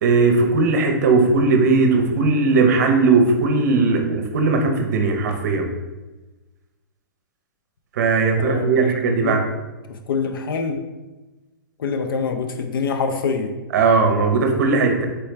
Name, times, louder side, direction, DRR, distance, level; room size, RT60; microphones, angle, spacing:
voice 1, 0.0-5.7 8.0-9.4 13.7-15.1, right 4 dB, 50° right, 4 dB, 0.7 m, -18 dB
voice 2, 8.4-9.4 9.9-10.9 11.8-13.5, left 5 dB, 80° left, 6 dB, 0.5 m, -25 dB
4.4 x 3.1 x 3.3 m, 1.1 s
hypercardioid pair, 160°, 12 cm